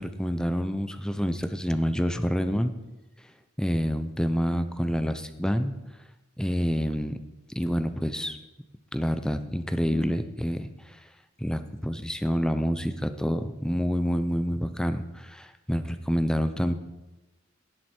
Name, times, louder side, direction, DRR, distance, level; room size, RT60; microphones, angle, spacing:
voice 1, 0.0-2.7 3.6-5.7 6.4-7.2 7.5-8.4 8.9-11.0 11.4-16.7, equal, 5° left, 9 dB, 0.7 m, -27 dB
17.5 x 7.9 x 4.5 m, 1.0 s
head